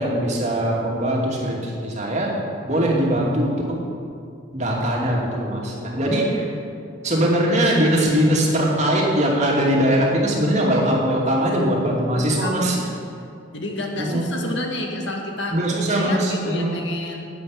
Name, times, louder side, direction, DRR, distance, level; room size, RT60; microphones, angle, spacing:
voice 1, 0.0-2.3 2.6-3.8 4.5-6.5 7.0-12.8 14.0-14.3 15.5-16.8, right 1 dB, 35° right, -2 dB, 2.6 m, -21 dB
voice 2, 12.2-13.0 13.5-15.6 15.9-17.3, left 1 dB, 65° left, 1 dB, 2.0 m, -30 dB
11.0 x 8.6 x 9.6 m, 2.4 s
head